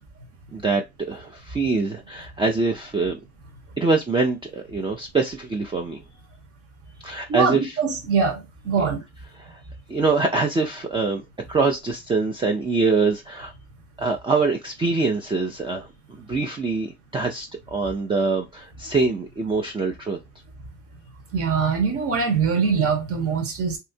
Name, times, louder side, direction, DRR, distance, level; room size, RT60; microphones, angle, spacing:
voice 1, 0.5-3.2 3.8-6.0 7.0-7.7 9.4-9.6 9.9-11.2 11.5-13.5 14.0-20.2, right 4 dB, 15° right, 0.4 m, -24 dB
voice 2, 7.3-9.0 21.3-23.8, right 5 dB, 45° right, 1.2 m, -23 dB
3.2 x 2.8 x 2.6 m
cardioid pair, 115°, 31 cm